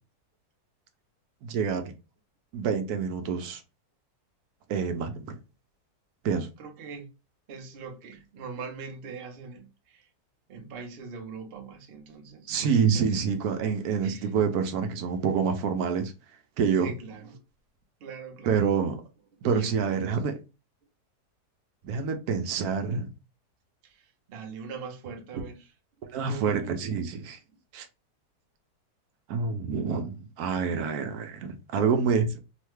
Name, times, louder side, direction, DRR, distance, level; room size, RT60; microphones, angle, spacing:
voice 1, 1.4-1.9 2.5-3.6 4.7-5.3 6.2-6.5 12.5-16.1 16.6-16.9 18.5-19.0 19.4-20.3 21.8-23.1 26.1-27.4 27.7-27.9 29.3-32.4, right 6 dB, 75° right, 1.0 m, -27 dB
voice 2, 6.6-7.1 7.5-10.1 10.5-13.2 13.5-13.7 14.0-14.3 16.8-17.4 18.0-18.7 19.4-20.3 23.8-25.7 26.3-26.7, right 5 dB, 55° right, 0.7 m, -42 dB
3.1 x 2.1 x 3.1 m
omnidirectional pair, 1.7 m